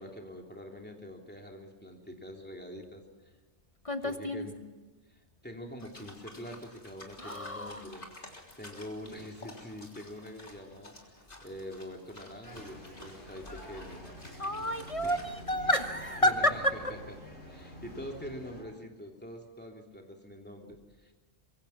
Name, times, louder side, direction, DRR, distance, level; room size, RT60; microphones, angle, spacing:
voice 1, 0.0-3.0 4.0-4.5 5.1-11.0 11.4-14.1 15.0-15.1 16.2-16.6 17.5-21.1, equal, 10° left, 1 dB, 3.3 m, -45 dB
voice 2, 3.8-4.5 7.2-7.9 14.4-17.0, equal, 30° left, 8 dB, 1.0 m, -30 dB
sound 1, 5.8-15.6, left 1 dB, 50° left, 3.7 m, -52 dB
sound 2, 12.4-18.6, left 1 dB, 70° left, 7.7 m, -48 dB
25.0 x 23.5 x 5.9 m, 1.3 s
omnidirectional pair, 1.1 m